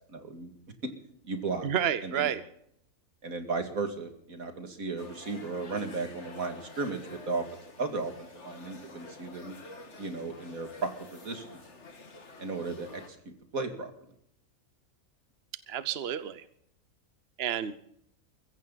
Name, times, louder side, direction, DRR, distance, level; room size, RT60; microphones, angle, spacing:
voice 1, 0.1-0.5 0.8-0.9 1.2-1.7 2.0-2.3 3.2-7.4 7.8-9.6 10.0-11.6 12.4-13.2 13.5-13.9, right 3 dB, 70° right, 6 dB, 2.7 m, -35 dB
voice 2, 1.6-2.4 15.7-16.4 17.4-17.8, right 9 dB, 50° right, 14 dB, 0.9 m, -30 dB
sound 1, 5.0-13.1, left 3 dB, 50° left, 2.2 m, -49 dB
22.0 x 15.5 x 4.0 m, 0.70 s
omnidirectional pair, 1.5 m